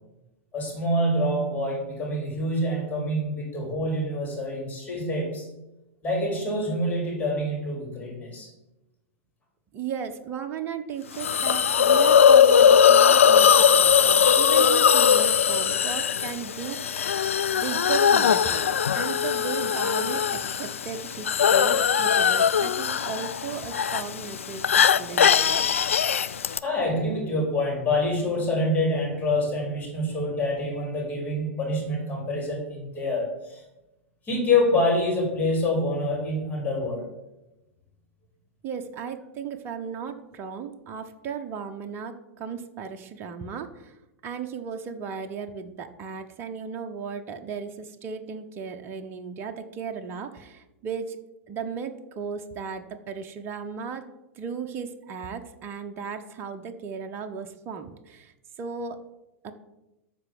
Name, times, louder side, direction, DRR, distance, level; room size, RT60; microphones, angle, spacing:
voice 1, 0.5-5.5 6.0-8.5 26.6-33.6 34.2-37.0, left 1 dB, 20° left, 0 dB, 4.3 m, -26 dB
voice 2, 9.7-17.0 17.6-25.7 38.6-44.0 44.2-51.2 51.5-54.1 54.4-59.0 59.4-59.5, right 6 dB, 30° right, 6 dB, 1.0 m, -36 dB
Hiss, 11.2-26.6, left 8 dB, 70° left, 0.5 m, -20 dB
13.0 x 4.6 x 7.7 m, 0.97 s
figure-of-eight pair, 95°, 7 cm